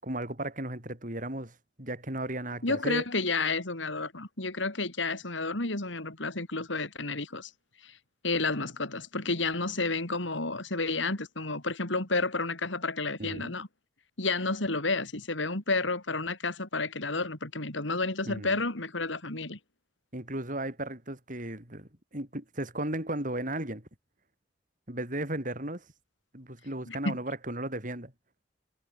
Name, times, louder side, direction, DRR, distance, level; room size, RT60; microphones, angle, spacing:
voice 1, 0.0-3.0 13.2-13.5 18.3-18.6 20.1-23.9 24.9-25.8 26.3-28.1, right 1 dB, 45° right, 6.6 m, -35 dB
voice 2, 2.6-7.5 7.8-7.9 8.2-13.7 14.2-19.6 26.9-27.2, left 3 dB, 80° left, 4.1 m, -31 dB
head